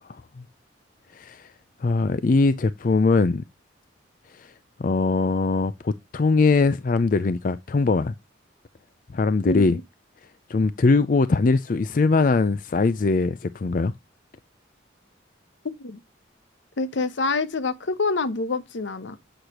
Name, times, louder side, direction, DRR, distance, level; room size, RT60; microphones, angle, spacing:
voice 1, 0.1-0.4 1.1-1.5 1.8-3.4 4.3-4.5 4.8-8.1 9.1-9.8 10.5-13.9, left 3 dB, 45° left, 0.4 m, -21 dB
voice 2, 9.5-9.8 15.8-16.0 16.8-19.2, left 3 dB, 75° left, 0.8 m, -26 dB
8.0 x 6.5 x 2.9 m
head